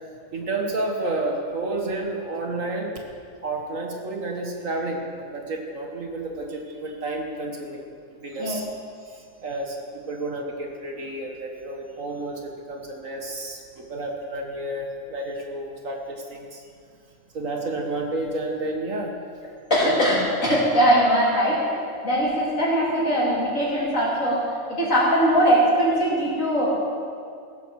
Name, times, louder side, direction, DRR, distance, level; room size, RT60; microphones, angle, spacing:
voice 1, 0.3-3.0 3.4-7.8 8.1-8.7 9.0-16.6 17.3-19.1 19.8-19.9, right 2 dB, 60° right, 1 dB, 1.9 m, -31 dB
voice 2, 19.7-26.7, equal, 60° left, -6 dB, 4.3 m, -21 dB
16.5 x 13.5 x 4.8 m, 2.3 s
omnidirectional pair, 1.6 m